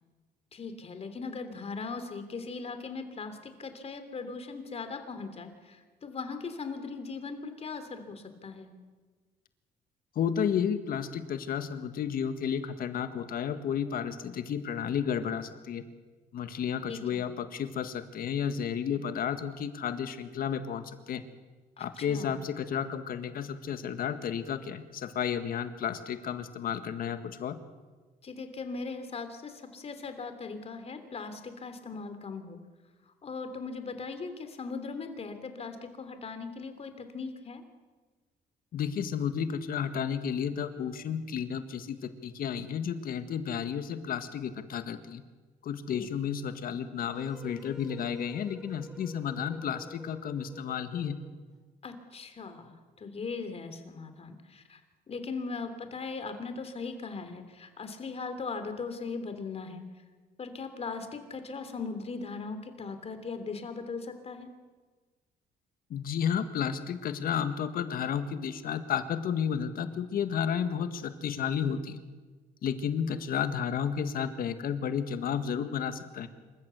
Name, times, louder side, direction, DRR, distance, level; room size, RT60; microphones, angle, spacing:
voice 1, 0.5-8.7 16.9-17.3 21.8-22.4 28.2-32.6 33.1-37.6 45.9-46.1 51.8-54.8 55.1-59.9 60.4-64.5, left 4 dB, 40° left, 9 dB, 3.1 m, -39 dB
voice 2, 10.1-15.8 16.3-21.2 21.8-27.6 38.7-45.2 45.6-51.2 65.9-72.0 72.6-76.3, left 8 dB, 65° left, 10 dB, 1.8 m, -32 dB
sound 1, 47.1-51.4, left 1 dB, ahead, 3.8 m, -50 dB
27.0 x 14.5 x 8.3 m, 1.4 s
cardioid pair, 95°, 16 cm